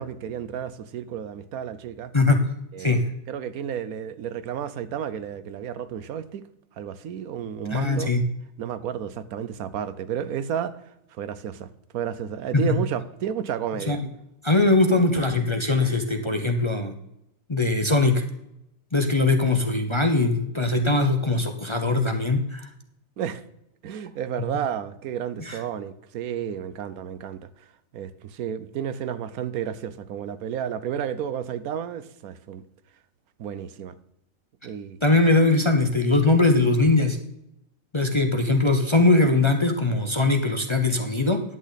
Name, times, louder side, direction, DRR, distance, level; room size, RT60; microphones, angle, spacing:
voice 1, 0.0-2.1 2.7-3.0 3.3-6.4 6.8-8.1 8.6-10.8 11.1-11.7 11.9-14.0 23.2-23.4 23.8-27.7 27.9-32.6 33.4-33.9 34.6-35.0, right 9 dB, 90° right, 1.2 m, -32 dB
voice 2, 7.7-8.2 12.5-12.6 13.9-14.0 14.4-16.9 17.5-18.2 18.9-22.7 25.4-25.6 35.0-37.2 37.9-41.4, left 2 dB, 30° left, 0.6 m, -21 dB
11.0 x 8.4 x 4.0 m
omnidirectional pair, 1.5 m